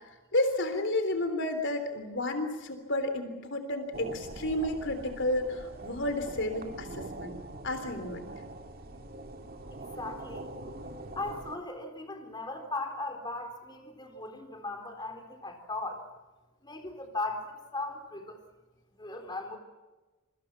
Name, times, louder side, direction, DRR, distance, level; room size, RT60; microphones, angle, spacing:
voice 1, 0.3-7.4 7.6-8.3, left 1 dB, 60° left, 8 dB, 3.5 m, -31 dB
sound 1, 3.9-11.6, right 2 dB, 45° right, 2.3 m, -43 dB
voice 2, 9.7-10.5 11.2-16.0 16.6-18.4 18.9-19.6, left 2 dB, 20° left, 5 dB, 3.9 m, -38 dB
27.5 x 24.5 x 6.1 m, 1.2 s
head